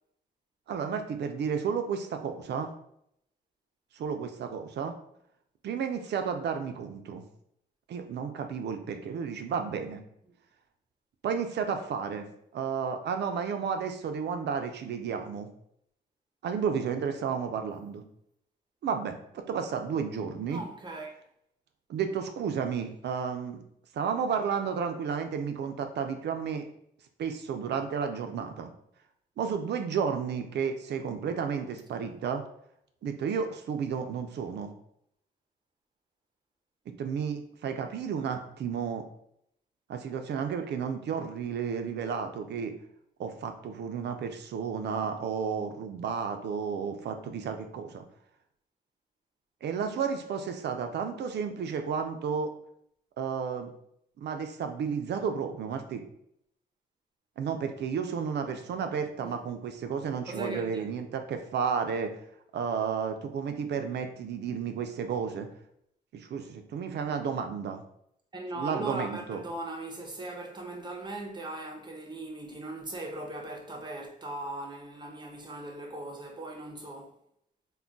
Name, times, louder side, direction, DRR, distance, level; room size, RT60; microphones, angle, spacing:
voice 1, 0.7-2.7 3.9-4.9 5.6-7.2 7.9-10.0 11.2-12.3 12.5-15.5 16.4-18.0 18.8-19.2 19.5-20.6 21.9-23.6 23.9-26.6 27.2-28.7 29.4-32.4 33.0-34.7 37.0-39.0 39.9-42.7 43.2-48.0 49.6-52.5 53.2-53.7 54.2-56.0 57.4-62.1 62.5-65.5 66.1-67.8 68.6-69.4, right 6 dB, 75° right, 0.4 m, -32 dB
voice 2, 20.5-21.1 59.2-59.4 60.3-60.9 68.3-77.2, right 2 dB, 25° right, 0.5 m, -39 dB
2.2 x 2.1 x 3.7 m
wide cardioid pair, 115°, 18 cm